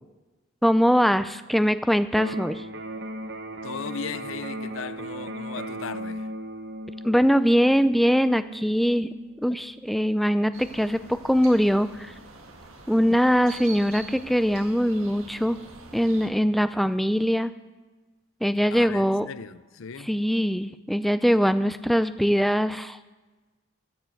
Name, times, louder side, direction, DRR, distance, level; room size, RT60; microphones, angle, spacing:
voice 1, 0.6-2.7 7.0-9.1 9.4-12.1 12.9-15.6 15.9-17.5 18.4-19.3 20.1-23.0, equal, ahead, 0.3 m, -22 dB
Electric guitar, 2.1-10.1, right 1 dB, 55° right, 0.9 m, -37 dB
voice 2, 3.6-6.3 18.7-20.1, left 6 dB, 70° left, 0.5 m, -37 dB
sound 1, 10.5-16.3, right 3 dB, 80° right, 1.7 m, -45 dB
14.0 x 7.1 x 7.7 m
head